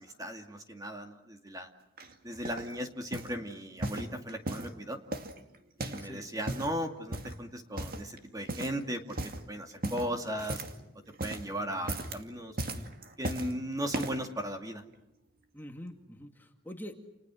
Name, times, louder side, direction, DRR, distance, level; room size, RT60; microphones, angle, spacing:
voice 1, 0.0-1.7 2.2-5.0 5.8-10.6 11.2-12.9 13.2-14.8, equal, 20° right, 5 dB, 2.3 m, -37 dB
sound 1, 2.0-2.7 3.1-3.4 3.8-4.7 5.1-6.1 6.4-6.8 7.1-7.4 7.8-8.2 8.5-8.8 9.1-9.4 9.8-10.8 11.1-11.5 11.8-12.2 12.6-13.5 13.9-14.3 14.9-15.0, right 1 dB, 50° right, 2.3 m, -37 dB
voice 2, 11.6-12.0 15.5-16.9, equal, 10° left, 4 dB, 2.0 m, -45 dB
30.0 x 29.5 x 6.3 m, 0.90 s
head